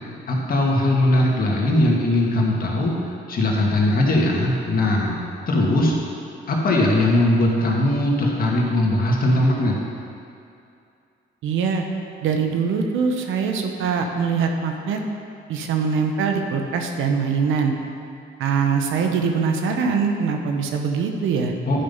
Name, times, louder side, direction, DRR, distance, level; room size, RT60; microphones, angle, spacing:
voice 1, 0.3-5.2 5.5-5.9 6.5-9.8 21.7-21.8, left 1 dB, 45° left, -2 dB, 1.8 m, -20 dB
voice 2, 11.4-11.8 12.2-15.0 15.5-17.7 18.4-21.5, right 5 dB, 85° right, 4 dB, 0.9 m, -22 dB
10.0 x 5.5 x 5.5 m, 2.5 s
cardioid pair, 90°, 20 cm